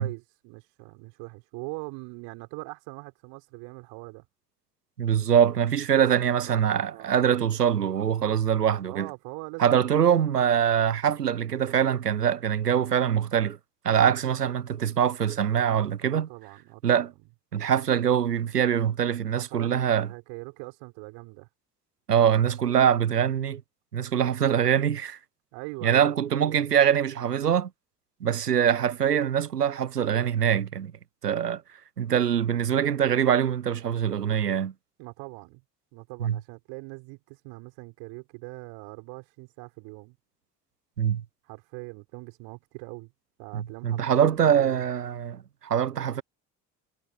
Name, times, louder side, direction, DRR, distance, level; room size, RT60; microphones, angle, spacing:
voice 1, 0.0-4.2 6.4-7.2 8.9-10.0 16.1-17.0 19.3-19.7 20.0-21.5 25.5-26.7 35.0-35.6 35.9-40.2 41.4-43.1 43.4-44.9, right 32 dB, 65° right, 5.7 m, -42 dB
voice 2, 5.0-9.1 9.6-13.6 13.8-16.3 16.8-17.1 17.5-20.1 22.1-23.6 23.9-25.2 25.8-27.7 28.2-30.9 31.2-31.6 32.0-34.7 36.2-36.4 41.0-41.2 43.5-46.2, right 9 dB, 90° right, 1.0 m, -23 dB
figure-of-eight pair, 55°, 46 cm